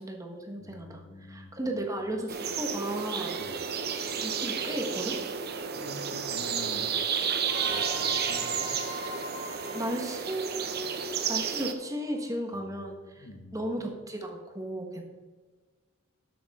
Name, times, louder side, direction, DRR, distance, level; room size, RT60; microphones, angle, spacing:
voice 1, 0.0-1.0 1.3-3.4 4.2-5.2 9.7-13.3 13.5-15.0, right 1 dB, 15° right, 2 dB, 1.4 m, -35 dB
voice 2, 0.6-2.1 3.4-3.7 5.7-7.0 7.7-8.7 12.5-12.9 13.2-13.8, left 2 dB, 50° left, 4 dB, 1.5 m, -46 dB
sound 1, 2.3-11.7, right 7 dB, 50° right, 0.8 m, -32 dB
sound 2, 7.5-12.0, right 1 dB, 80° right, 3.4 m, -40 dB
13.0 x 7.3 x 3.8 m, 1.4 s
head